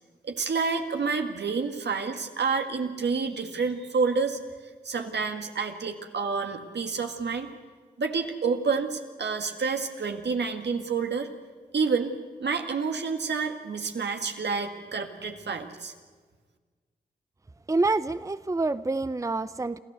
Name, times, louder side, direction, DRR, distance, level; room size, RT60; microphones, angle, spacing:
voice 1, 0.2-4.4 4.8-7.5 8.0-11.3 11.7-12.1 12.4-15.9, right 5 dB, 75° right, 5 dB, 1.9 m, -29 dB
voice 2, 17.7-19.8, right 3 dB, 20° right, 14 dB, 0.6 m, -27 dB
27.5 x 13.5 x 8.1 m, 1.5 s
cardioid pair, 40°, 18 cm